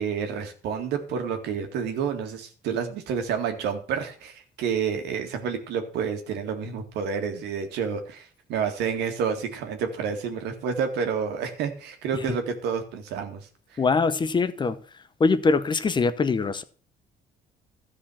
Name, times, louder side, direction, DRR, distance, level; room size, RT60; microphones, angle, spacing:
voice 1, 0.0-13.8, right 6 dB, 85° right, 2.0 m, -29 dB
voice 2, 13.8-14.8 15.2-16.6, left 4 dB, 25° left, 0.8 m, -22 dB
13.0 x 4.9 x 7.1 m
cardioid pair, 110°, 17 cm